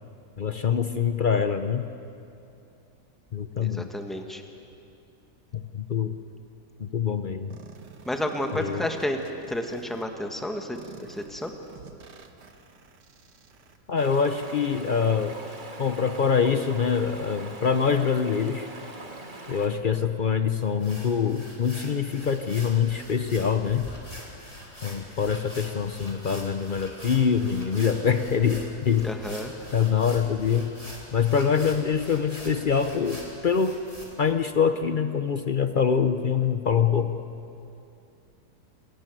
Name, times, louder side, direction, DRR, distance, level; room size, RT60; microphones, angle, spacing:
voice 1, 0.4-1.8 3.3-3.9 5.5-6.1 6.8-7.6 8.5-8.8 13.9-15.4 15.8-18.7 19.5-23.9 24.8-29.1 29.7-30.7 31.1-33.8 34.2-37.1, left 6 dB, 60° left, 8 dB, 0.5 m, -24 dB
voice 2, 3.6-4.4 8.0-9.2 9.5-11.5 29.0-29.5, left 1 dB, ahead, 4 dB, 1.3 m, -31 dB
sound 1, 7.5-10.0 10.8-15.5, right 7 dB, 75° right, 1.9 m, -49 dB
Stream, 13.9-19.7, right 2 dB, 30° right, 1.6 m, -42 dB
sound 2, 20.6-34.1, equal, 20° left, 3.8 m, -44 dB
27.5 x 13.5 x 9.2 m, 2.6 s
omnidirectional pair, 1.8 m